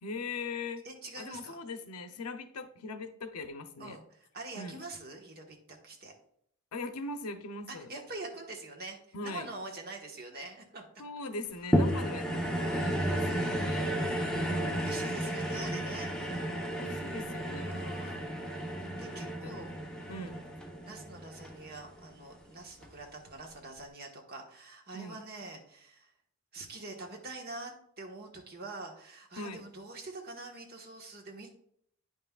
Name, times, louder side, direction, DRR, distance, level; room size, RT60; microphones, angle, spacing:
voice 1, 0.0-0.8 1.2-4.0 4.6-4.8 6.7-7.9 9.1-9.5 11.0-13.2 13.5-14.9 16.8-17.8 19.4-19.7 20.1-20.4 24.9-25.2 29.4-29.6, left 3 dB, 90° left, 9 dB, 0.7 m, -41 dB
voice 2, 0.8-1.6 3.8-6.1 7.7-10.8 13.1-14.0 14.8-16.4 17.6-18.2 19.0-19.7 20.1-20.4 20.8-26.1 26.5-31.5, right 2 dB, 45° right, 1 dB, 1.3 m, -45 dB
sound 1, 11.7-22.2 22.8-22.9, equal, 5° left, 0.9 m, -33 dB
9.6 x 5.7 x 2.3 m, 0.69 s
head